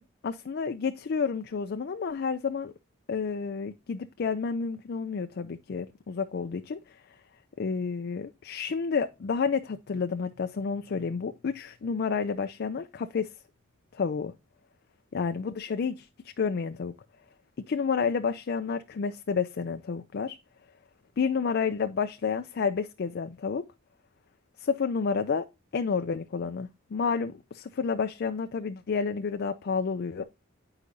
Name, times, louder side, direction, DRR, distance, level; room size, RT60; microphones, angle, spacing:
voice 1, 0.2-2.7 3.1-7.0 7.6-13.3 13.9-14.3 15.1-16.1 16.4-16.9 17.7-20.4 21.2-23.6 24.6-25.4 25.7-30.2, left 5 dB, 50° left, 0.4 m, -30 dB
8.3 x 4.8 x 2.6 m
head